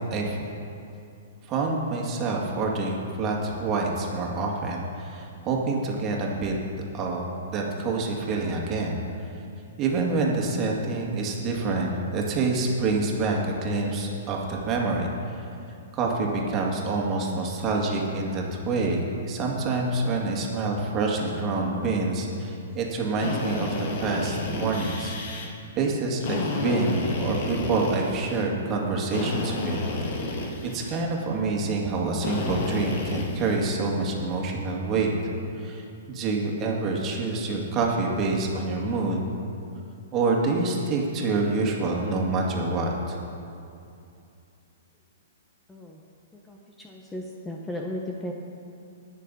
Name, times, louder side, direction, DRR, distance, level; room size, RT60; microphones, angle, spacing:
voice 1, 0.1-0.5 1.5-6.5 6.9-9.0 9.8-15.4 15.9-25.1 25.8-29.8 30.6-35.1 35.6-39.2 40.1-43.2, right 3 dB, 30° right, -1 dB, 2.1 m, -27 dB
Drill, 23.2-25.5 26.2-28.4 29.1-31.0 32.2-33.6, left 2 dB, 55° left, 2.0 m, -31 dB
voice 2, 45.7-46.0 46.3-48.3, left 1 dB, 10° left, 0 dB, 0.9 m, -36 dB
20.5 x 6.8 x 4.2 m, 2.6 s
hypercardioid pair, 135°, 0 cm